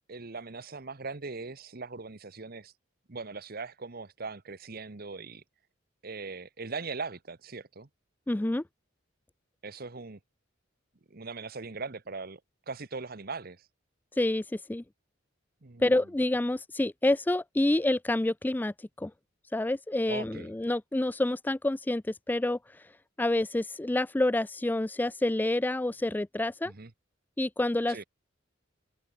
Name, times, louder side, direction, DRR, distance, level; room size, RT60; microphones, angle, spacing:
voice 1, 0.1-2.7 3.1-5.4 6.0-7.9 9.6-10.2 11.1-12.4 12.7-13.6 15.6-15.8 20.1-20.5 26.6-26.9 27.9-28.0, right 4 dB, 50° right, 1.1 m, -40 dB
voice 2, 8.3-8.6 14.2-14.8 15.8-19.1 19.5-22.9 23.2-26.7 27.4-28.0, left 1 dB, 10° left, 0.3 m, -28 dB
open air
head